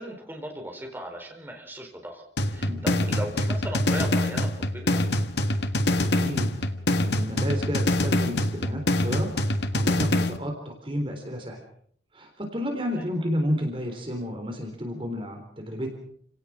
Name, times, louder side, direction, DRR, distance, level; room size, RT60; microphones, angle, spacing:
voice 1, 0.0-2.2 2.5-5.0 13.0-13.2, right 1 dB, 10° right, 2 dB, 4.4 m, -37 dB
sound 1, 2.4-10.4, left 1 dB, 75° left, 1.7 m, -25 dB
voice 2, 6.0-6.5 7.0-9.3 9.7-11.6 12.1-15.9, equal, 30° right, 3 dB, 3.9 m, -31 dB
29.0 x 18.0 x 6.2 m, 0.63 s
head